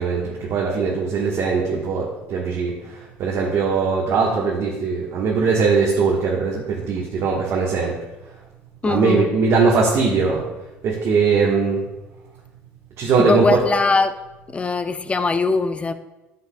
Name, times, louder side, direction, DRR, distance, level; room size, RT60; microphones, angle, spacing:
voice 1, 0.0-2.7 3.2-7.9 8.8-10.4 10.8-11.8 13.0-13.5, right 4 dB, 60° right, -3 dB, 1.2 m, -20 dB
voice 2, 8.8-9.3 13.2-14.1 14.5-15.9, left 3 dB, 20° left, 10 dB, 0.5 m, -20 dB
10.0 x 5.7 x 2.2 m, 1.0 s
supercardioid pair, 75°, 5 cm